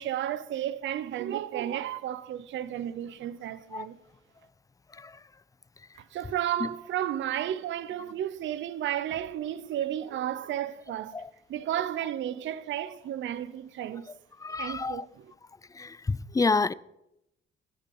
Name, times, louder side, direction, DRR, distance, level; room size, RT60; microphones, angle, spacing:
voice 1, 0.0-4.0 6.1-11.1 11.5-14.1 14.5-15.3, right 11 dB, 70° right, 0.7 m, -33 dB
voice 2, 14.4-15.0 16.3-16.7, left 4 dB, 15° left, 0.4 m, -26 dB
13.5 x 9.4 x 5.4 m
cardioid pair, 90°, 20 cm